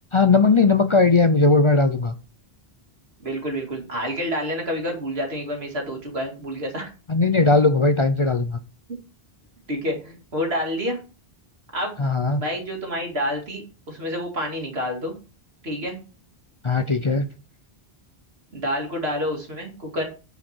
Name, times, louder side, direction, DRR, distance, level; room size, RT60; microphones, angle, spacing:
voice 1, 0.1-2.1 7.1-8.6 12.0-12.4 16.6-17.3, left 3 dB, 40° left, 9 dB, 0.5 m, -18 dB
voice 2, 3.2-6.9 9.7-11.0 11.7-12.0 12.4-15.1 15.6-16.0 18.5-20.0, equal, 85° right, 1 dB, 2.6 m, -28 dB
9.3 x 5.2 x 4.5 m, 0.34 s
omnidirectional pair, 1.0 m